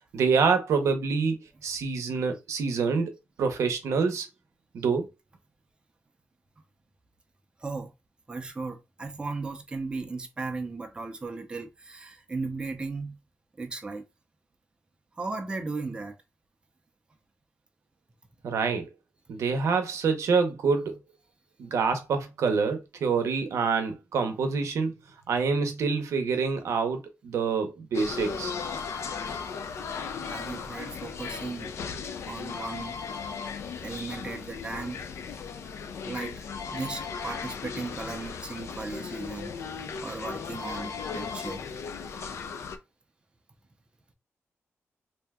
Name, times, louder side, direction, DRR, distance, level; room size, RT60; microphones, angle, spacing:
voice 1, 0.1-1.4 1.6-3.1 3.4-4.3 4.7-5.1 18.4-18.9 19.3-21.0 21.6-24.9 25.3-28.5, right 5 dB, 80° right, 0.6 m, -26 dB
voice 2, 7.6-7.9 8.3-13.2 13.6-14.0 15.2-16.1 30.2-31.7 32.3-33.0 33.8-35.0 36.0-39.6 40.0-41.6, right 3 dB, 20° right, 0.5 m, -36 dB
sound 1, 27.9-42.8, left 5 dB, 65° left, 0.4 m, -36 dB
2.7 x 2.2 x 3.4 m
wide cardioid pair, 145°, 5 cm